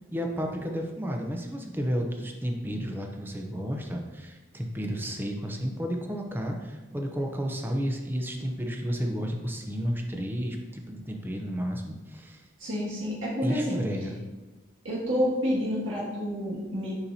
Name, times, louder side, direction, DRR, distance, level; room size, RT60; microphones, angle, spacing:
voice 1, 0.1-12.4 13.4-14.2, equal, 10° right, 2 dB, 0.6 m, -32 dB
voice 2, 12.6-13.8 14.8-16.9, equal, 85° right, -7 dB, 1.9 m, -29 dB
7.0 x 5.6 x 2.8 m, 1.2 s
head